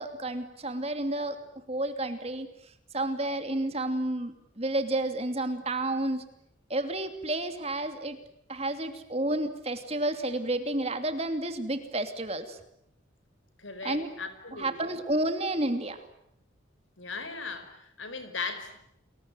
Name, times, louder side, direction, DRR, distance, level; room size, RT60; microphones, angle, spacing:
voice 1, 0.0-1.4 1.7-2.5 2.9-6.2 6.7-8.2 8.5-12.6 13.8-14.1 14.5-16.1, right 1 dB, 35° right, 9 dB, 2.8 m, -30 dB
voice 2, 13.6-14.9 17.0-18.8, left 4 dB, 85° left, 10 dB, 5.0 m, -38 dB
30.0 x 22.0 x 9.1 m, 0.75 s
head